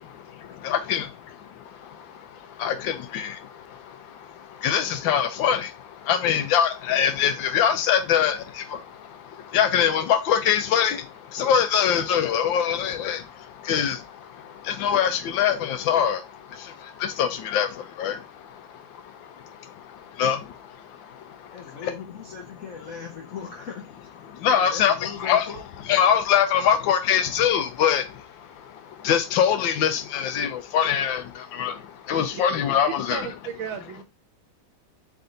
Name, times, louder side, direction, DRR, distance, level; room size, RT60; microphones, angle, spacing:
voice 1, 0.3-21.9 24.3-25.5 25.9-33.3, left 8 dB, 80° left, 1.4 m, -24 dB
voice 2, 21.5-24.1 24.6-25.6, left 6 dB, 55° left, 1.0 m, -39 dB
voice 3, 33.1-34.0, right 8 dB, 80° right, 1.5 m, -34 dB
3.9 x 3.4 x 3.8 m
omnidirectional pair, 2.1 m